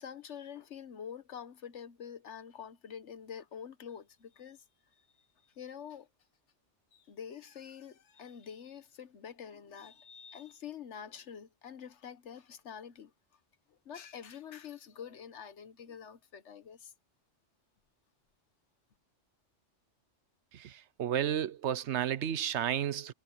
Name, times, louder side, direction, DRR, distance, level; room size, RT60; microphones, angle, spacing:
voice 1, 0.0-4.6 5.6-6.1 6.9-13.1 13.7-16.9, left 8 dB, 75° left, 1.3 m, -46 dB
voice 2, 20.5-23.1, right 10 dB, 75° right, 1.0 m, -32 dB
omnidirectional pair, 1.2 m